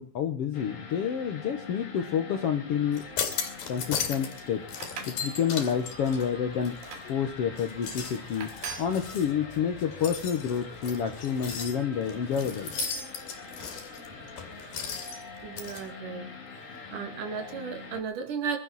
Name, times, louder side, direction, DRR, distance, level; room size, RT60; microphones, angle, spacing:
voice 1, 0.0-3.0 3.7-4.6 5.1-6.8 7.1-8.5 8.8-12.7, left 8 dB, 60° left, 7 dB, 1.6 m, -29 dB
sound 1, 0.5-18.0, left 4 dB, 25° left, 1.9 m, -44 dB
sound 2, 2.9-4.4 4.7-7.1 7.6-15.8, left 6 dB, 80° left, 4.5 m, -37 dB
sound 3, 4.7-5.2 5.7-6.0 6.8-7.1 7.9-8.0 8.4-8.9, right 6 dB, 85° right, 4.2 m, -40 dB
voice 2, 15.4-16.3 16.9-18.6, right 6 dB, 65° right, 5 dB, 3.8 m, -34 dB
24.0 x 12.5 x 4.2 m, 0.36 s
omnidirectional pair, 4.0 m